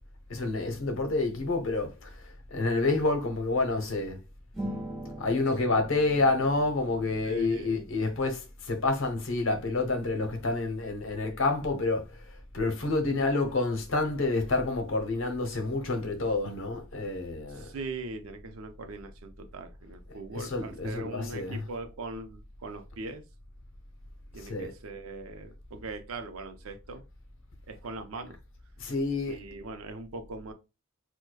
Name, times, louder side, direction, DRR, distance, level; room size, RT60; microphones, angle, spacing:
voice 1, 0.3-2.1 2.5-4.2 5.2-12.1 12.5-17.7 20.3-21.6 24.4-24.7 28.8-29.4, left 3 dB, 65° left, 0.8 m, -28 dB
sound 1, 4.5-7.9, right 1 dB, ahead, 1.2 m, -42 dB
voice 2, 7.2-7.9 17.5-23.2 24.3-27.0 27.7-28.4 29.3-30.5, right 3 dB, 80° right, 0.5 m, -41 dB
4.6 x 2.1 x 2.2 m
head